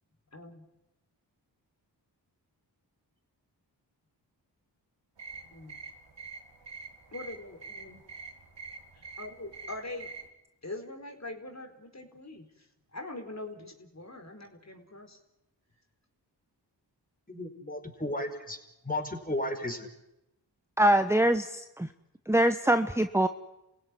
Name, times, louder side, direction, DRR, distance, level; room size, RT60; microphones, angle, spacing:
voice 1, 0.3-0.6 5.5-5.8 7.1-8.0 8.9-10.1 10.6-15.2, left 2 dB, 35° left, 4 dB, 4.5 m, -43 dB
sound 1, 5.2-10.3, right 4 dB, 75° right, 2.9 m, -46 dB
voice 2, 17.3-18.6 18.9-19.9, left 1 dB, 20° left, 5 dB, 5.3 m, -34 dB
voice 3, 20.8-21.9 22.3-23.3, right 1 dB, 5° right, 8 dB, 1.1 m, -24 dB
28.0 x 16.5 x 9.8 m, 0.92 s
cardioid pair, 40°, 44 cm